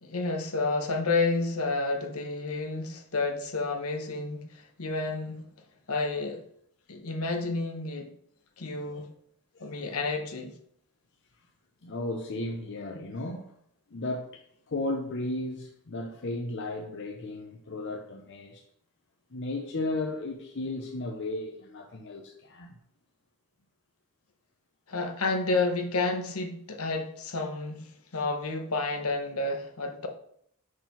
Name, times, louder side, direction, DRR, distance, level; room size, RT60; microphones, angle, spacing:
voice 1, 0.0-5.4 5.9-6.4 6.9-8.1 8.6-9.1 9.6-10.5 24.9-30.1, left 3 dB, 70° left, 1.1 m, -30 dB
voice 2, 11.8-13.5 13.9-18.6 19.3-22.8, left 2 dB, 55° left, 0.7 m, -35 dB
5.7 x 4.8 x 5.8 m
head